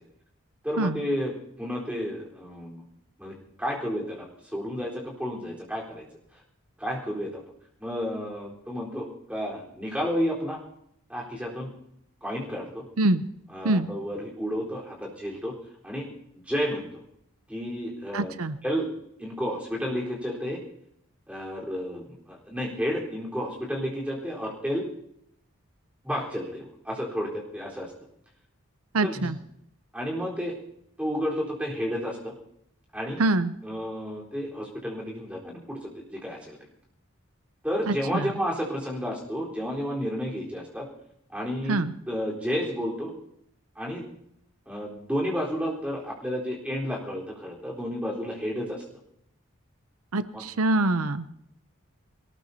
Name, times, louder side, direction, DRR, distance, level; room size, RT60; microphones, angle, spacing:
voice 1, 0.6-2.8 3.2-6.1 6.8-7.4 7.8-10.6 11.1-11.7 12.2-12.8 13.5-15.5 15.8-16.1 16.4-17.0 17.5-18.3 18.6-18.9 19.2-20.6 21.3-24.8 26.0-27.9 29.0-29.3 29.9-30.6 31.0-32.3 32.9-33.2 33.6-36.6 37.6-40.9 41.3-41.8 42.1-43.1 43.8-44.0 44.7-48.8 50.3-50.4, equal, 5° right, -3 dB, 4.1 m, -31 dB
voice 2, 18.1-18.6 28.9-29.4 33.2-33.5 37.9-38.3 41.7-41.9 50.1-51.3, right 2 dB, 90° right, 12 dB, 0.7 m, -24 dB
22.0 x 19.5 x 2.8 m, 0.72 s
head